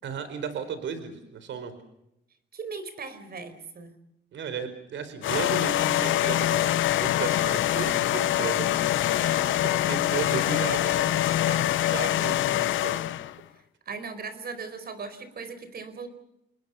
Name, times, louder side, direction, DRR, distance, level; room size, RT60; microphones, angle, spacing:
voice 1, 0.0-1.7 4.3-13.0, right 6 dB, 70° right, 11 dB, 4.5 m, -35 dB
voice 2, 2.5-3.9 13.9-16.1, right 4 dB, 50° right, 12 dB, 4.9 m, -38 dB
sound 1, 5.2-13.3, left 14 dB, 75° left, 0.9 m, -24 dB
29.5 x 20.5 x 7.0 m, 0.83 s
cardioid pair, 90°, 20 cm